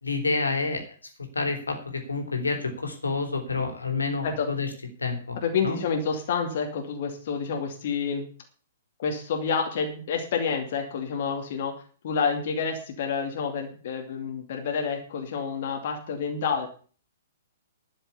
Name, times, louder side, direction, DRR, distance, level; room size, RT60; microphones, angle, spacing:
voice 1, 0.0-0.8 1.3-4.7 5.0-5.4 5.6-5.8, left 4 dB, 80° left, 5 dB, 3.4 m, -28 dB
voice 2, 5.3-8.3 9.0-11.7 12.0-16.7, left 6 dB, 50° left, 3 dB, 2.5 m, -28 dB
12.0 x 7.1 x 8.3 m, 0.42 s
figure-of-eight pair, 115°, 0 cm